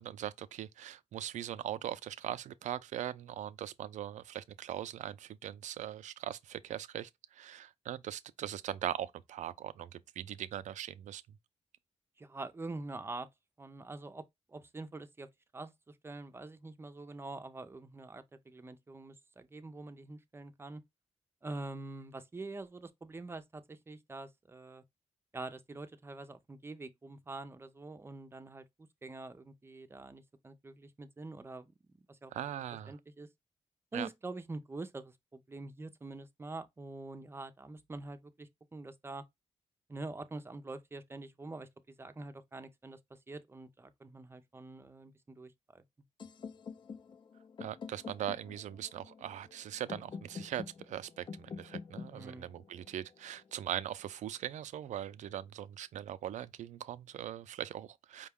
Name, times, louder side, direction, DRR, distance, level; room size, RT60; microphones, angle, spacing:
voice 1, 0.0-11.2 32.3-33.0 33.9-34.1 47.6-58.3, right 11 dB, 85° right, 0.4 m, -40 dB
voice 2, 12.2-13.3 13.6-14.2 14.5-15.3 15.5-20.8 21.4-24.8 25.3-28.6 29.0-31.7 32.1-32.3 32.9-33.3 33.9-39.2 39.9-45.8 52.1-52.5, right 2 dB, 20° right, 0.5 m, -45 dB
sound 1, 46.2-54.1, left 5 dB, 40° left, 0.5 m, -48 dB
5.1 x 2.2 x 3.5 m
wide cardioid pair, 140°, 12 cm